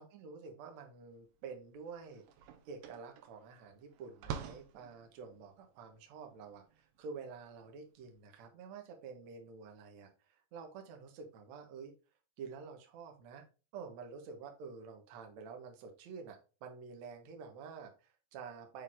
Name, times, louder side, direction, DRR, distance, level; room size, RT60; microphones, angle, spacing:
voice 1, 0.0-11.9 12.4-13.5 13.7-18.8, right 5 dB, 65° right, 4 dB, 1.8 m, -49 dB
sound 1, 1.3-1.4 1.7-8.2, right 7 dB, 80° right, 3.0 m, -48 dB
7.3 x 4.1 x 3.6 m, 0.32 s
omnidirectional pair, 5.0 m